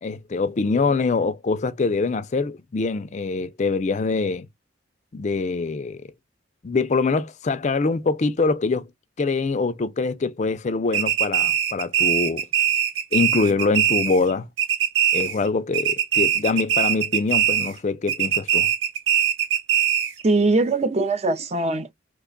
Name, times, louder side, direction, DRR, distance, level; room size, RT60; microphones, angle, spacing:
voice 1, 0.0-4.5 5.1-6.1 6.6-8.9 9.2-12.4 13.1-14.5 15.1-18.7, left 4 dB, 35° left, 0.4 m, -24 dB
sound 1, 10.9-14.3 14.6-15.5 15.7-17.8 18.1-20.2, right 9 dB, 75° right, 0.9 m, -22 dB
voice 2, 20.2-21.9, right 3 dB, 35° right, 0.5 m, -21 dB
3.2 x 2.2 x 3.7 m
head